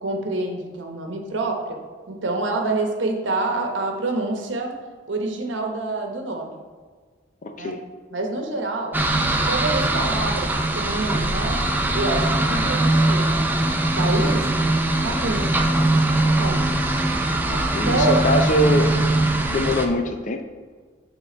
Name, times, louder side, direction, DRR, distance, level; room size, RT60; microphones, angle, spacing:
voice 1, 0.0-1.8 2.1-4.7 5.1-6.6 7.6-7.7 8.1-9.0 9.5-10.5 10.7-13.4 13.9-14.5 15.0-15.5 16.1-16.7 17.5-18.2, right 2 dB, 75° right, 2 dB, 1.0 m, -27 dB
voice 2, 7.4-7.8 17.5-19.0 19.5-20.4, left 1 dB, 40° left, 6 dB, 0.5 m, -23 dB
sound 1, 8.9-19.9, right 2 dB, 10° right, 0.4 m, -21 dB
7.3 x 3.6 x 4.5 m, 1.5 s
head